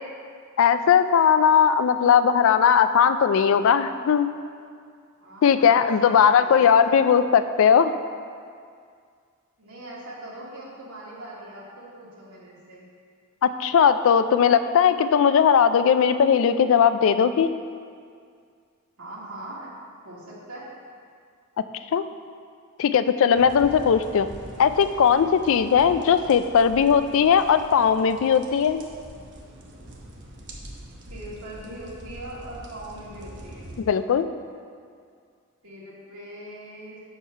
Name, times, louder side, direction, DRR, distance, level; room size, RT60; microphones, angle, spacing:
voice 1, 0.6-4.3 5.4-8.0 13.4-17.5 21.9-22.0 22.8-24.3 24.6-28.8 33.8-34.3, left 7 dB, 65° left, 11 dB, 0.3 m, -19 dB
voice 2, 5.2-7.3 9.6-12.9 19.0-19.7 20.0-20.7 31.1-33.7 35.6-37.0, right 1 dB, 85° right, -6 dB, 1.9 m, -41 dB
sound 1, 23.3-33.8, right 1 dB, 55° right, 0.9 m, -43 dB
7.3 x 4.6 x 5.6 m, 2.2 s
head